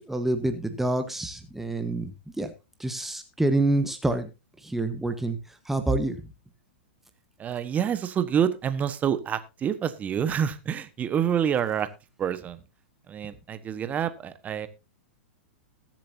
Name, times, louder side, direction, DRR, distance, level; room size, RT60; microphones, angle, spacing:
voice 1, 0.1-2.1 2.4-2.5 2.8-4.3 4.6-5.4 5.7-6.2, right 2 dB, 5° right, 7 dB, 1.3 m, -27 dB
voice 2, 7.4-11.9 12.2-12.6 13.1-14.7, right 8 dB, 25° right, 11 dB, 1.3 m, -27 dB
21.0 x 7.5 x 2.8 m, 0.28 s
figure-of-eight pair, 105°, 6 cm